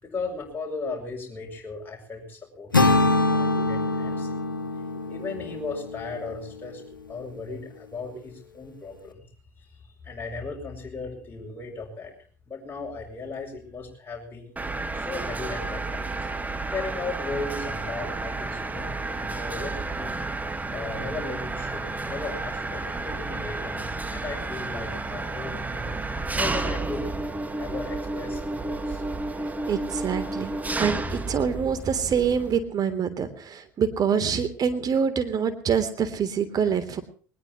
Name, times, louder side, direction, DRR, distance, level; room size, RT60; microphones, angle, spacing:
voice 1, 0.0-2.9 3.3-4.4 5.1-6.8 7.1-9.2 9.6-12.1 12.5-14.5 14.9-16.3 16.7-20.2 20.7-25.9 26.3-27.1 27.6-29.0, left 3 dB, 20° left, -1 dB, 7.1 m, -36 dB
sound 1, 2.7-6.8, left 2 dB, 85° left, 1.7 m, -24 dB
Mechanisms, 14.6-32.6, right 2 dB, 15° right, 2.2 m, -31 dB
voice 2, 29.7-37.0, right 7 dB, 35° right, 11 dB, 3.3 m, -26 dB
21.5 x 20.5 x 3.1 m, 0.42 s
figure-of-eight pair, 70°, 11 cm